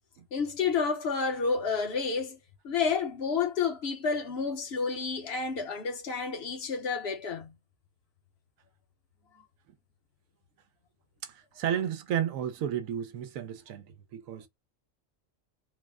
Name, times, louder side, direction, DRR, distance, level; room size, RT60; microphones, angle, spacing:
voice 1, 0.3-2.4 2.6-7.5, left 5 dB, 55° left, 1.1 m, -30 dB
voice 2, 11.2-14.5, right 9 dB, 85° right, 1.1 m, -33 dB
3.8 x 2.1 x 3.5 m
omnidirectional pair, 1.4 m